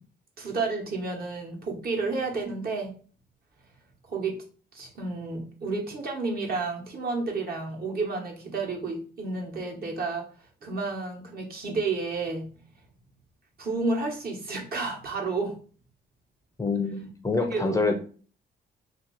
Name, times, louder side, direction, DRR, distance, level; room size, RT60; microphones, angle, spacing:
voice 1, 0.4-2.9 4.1-4.4 4.7-10.3 10.6-12.5 13.6-15.6 17.4-17.8, right 3 dB, 50° right, 0 dB, 1.2 m, -31 dB
voice 2, 16.6-17.9, left 3 dB, 15° left, 4 dB, 0.5 m, -26 dB
2.8 x 2.8 x 3.9 m, 0.41 s
cardioid pair, 90°, 20 cm